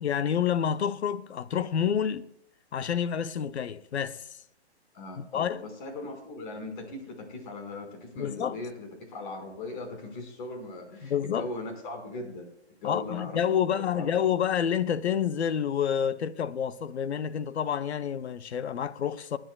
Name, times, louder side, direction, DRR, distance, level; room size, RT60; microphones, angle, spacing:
voice 1, 0.0-2.3 2.7-4.3 5.3-5.6 8.2-8.6 11.0-11.4 12.8-19.4, left 8 dB, 75° left, 0.9 m, -28 dB
voice 2, 4.9-12.5 12.8-14.3, left 2 dB, 45° left, 5.1 m, -39 dB
27.0 x 10.5 x 2.3 m
hypercardioid pair, 135°, 34 cm